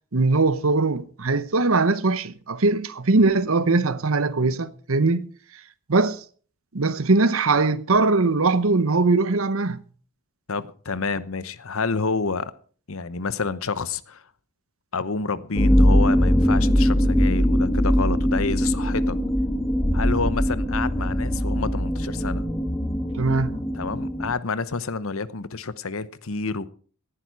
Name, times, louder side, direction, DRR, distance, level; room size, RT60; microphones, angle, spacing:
voice 1, 0.1-5.3 5.9-6.2 6.7-9.8 23.1-23.6, right 3 dB, 65° right, 0.9 m, -21 dB
voice 2, 10.5-12.5 12.9-14.2 14.9-19.2 19.9-22.5 23.7-26.7, left 4 dB, 65° left, 0.9 m, -29 dB
sound 1, 15.5-24.3, equal, 10° left, 1.0 m, -21 dB
18.5 x 11.0 x 4.7 m
head